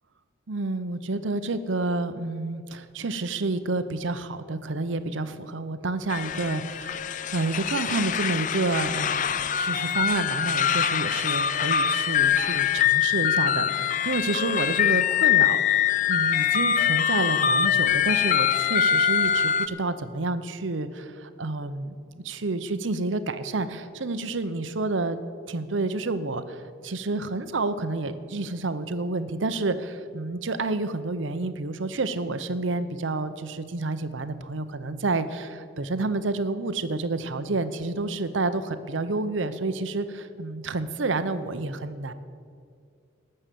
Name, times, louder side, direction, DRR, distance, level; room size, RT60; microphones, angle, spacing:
voice 1, 0.5-25.2 25.5-42.1, right 3 dB, 80° right, 11 dB, 0.7 m, -29 dB
sound 1, 6.1-19.7, left 9 dB, 40° left, 0.4 m, -24 dB
18.5 x 6.7 x 7.5 m, 2.3 s
head